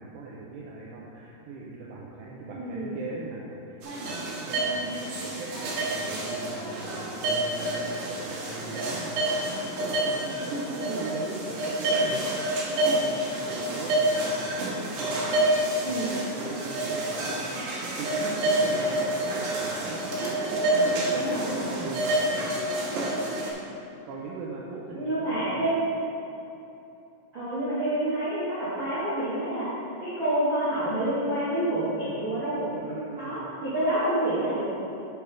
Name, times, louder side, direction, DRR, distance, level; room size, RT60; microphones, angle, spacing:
voice 1, 0.0-22.6 24.1-25.7 32.7-33.5, right 3 dB, 80° right, -4 dB, 2.5 m, -40 dB
voice 2, 2.5-2.9 10.9-11.0 15.8-16.1 21.1-21.7 24.9-25.8 27.3-29.7 30.0-32.7 33.2-34.6, right 1 dB, 45° right, -11 dB, 1.5 m, -28 dB
sound 1, 3.8-23.5, right 1 dB, 65° right, 3.5 m, -28 dB
10.5 x 8.1 x 3.5 m, 2.9 s
omnidirectional pair, 5.7 m